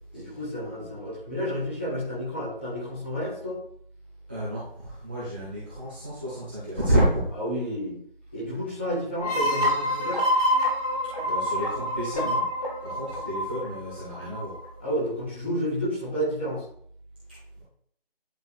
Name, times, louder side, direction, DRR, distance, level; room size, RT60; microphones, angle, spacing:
voice 1, 0.1-3.6 7.3-8.0 8.3-10.2 14.8-16.6, equal, 10° left, -8 dB, 1.5 m, -30 dB
voice 2, 4.3-7.2 11.2-12.4 12.8-14.5 17.6-17.7, right 1 dB, 10° right, -11 dB, 0.9 m, -29 dB
sound 1, 9.2-14.6, equal, 40° left, 2.1 m, -27 dB
10.5 x 5.1 x 2.4 m, 0.64 s
figure-of-eight pair, 165°, 29 cm